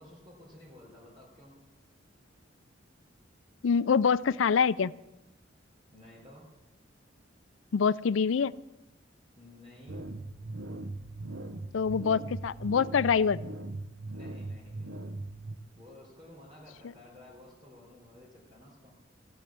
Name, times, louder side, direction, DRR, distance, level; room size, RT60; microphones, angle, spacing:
voice 1, 0.0-1.6 5.9-6.4 9.4-10.1 14.1-15.0 15.7-18.9, left 1 dB, 25° right, -5 dB, 3.7 m, -53 dB
voice 2, 3.6-4.9 7.7-8.5 11.7-13.4, left 6 dB, 80° left, 18 dB, 0.4 m, -25 dB
sound 1, 9.9-15.6, right 2 dB, 90° right, 0.9 m, -40 dB
16.0 x 7.9 x 8.7 m, 0.99 s
head